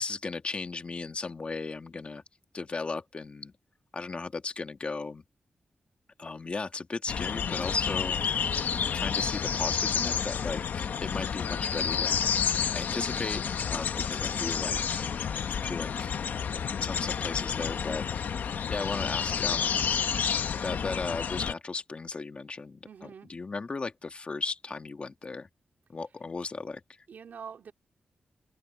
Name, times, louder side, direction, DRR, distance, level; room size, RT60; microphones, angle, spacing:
voice 1, 0.0-2.2 2.5-3.5 3.9-5.2 6.2-12.3 12.7-15.1 15.6-16.1 16.8-18.1 18.7-19.9 20.5-25.5 25.9-26.8, left 4 dB, 40° left, 2.1 m, -36 dB
sound 1, 7.1-21.5, left 7 dB, 90° left, 1.1 m, -30 dB
voice 2, 22.8-23.3 27.1-27.7, right 7 dB, 80° right, 2.5 m, -45 dB
wide cardioid pair, 110°, 3 cm